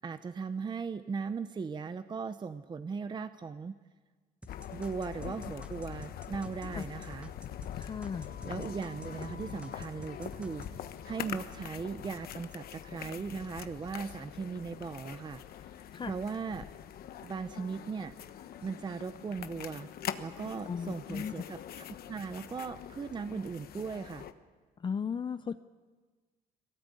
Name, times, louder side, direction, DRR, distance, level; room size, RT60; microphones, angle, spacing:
voice 1, 0.0-3.8 4.7-7.3 8.4-15.7 16.0-16.7 17.2-18.1 18.6-19.9 20.2-24.3, right 5 dB, 25° right, 11 dB, 0.7 m, -38 dB
sound 1, 4.4-9.3 9.6-10.7, right 1 dB, 5° right, 1.3 m, -52 dB
sound 2, 4.5-24.3, left 10 dB, 65° left, 1.1 m, -43 dB
voice 2, 7.7-8.3 15.9-16.1 20.7-21.3 24.8-25.6, left 6 dB, 30° left, 11 dB, 0.6 m, -36 dB
22.0 x 18.0 x 8.4 m, 1.4 s
cardioid pair, 110°, 17 cm